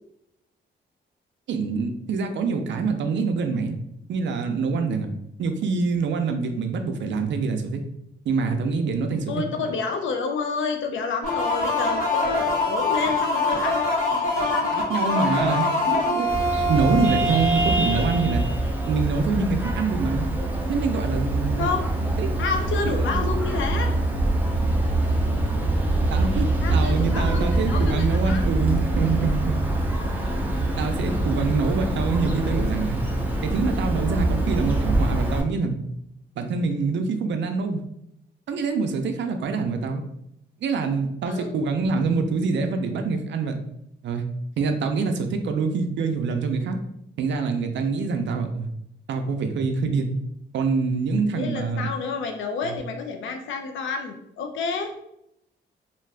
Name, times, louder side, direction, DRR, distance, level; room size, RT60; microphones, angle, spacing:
voice 1, 1.5-3.8 4.1-5.1 5.4-7.8 8.3-9.3 14.7-18.4 18.9-20.3 20.7-21.7 22.2-22.3 22.9-23.3 26.1-29.6 30.8-33.0 33.4-35.8 36.4-37.8 38.5-40.0 40.6-43.6 44.0-44.3 44.6-46.8 47.2-48.7 49.1-50.2 50.5-51.9 52.6-52.8, right 4 dB, 70° right, 6 dB, 0.5 m, -25 dB
voice 2, 9.3-16.0 21.5-21.9 22.4-24.0 26.6-28.5 41.3-41.5 51.4-54.9, left 4 dB, 85° left, 5 dB, 0.5 m, -30 dB
sound 1, 11.2-18.8, left 2 dB, 50° left, 1.2 m, -24 dB
Vehicle horn car horn honking, 16.3-35.4, right 1 dB, 10° right, 0.5 m, -24 dB
2.5 x 2.3 x 3.3 m, 0.79 s
cardioid pair, 100°, 19 cm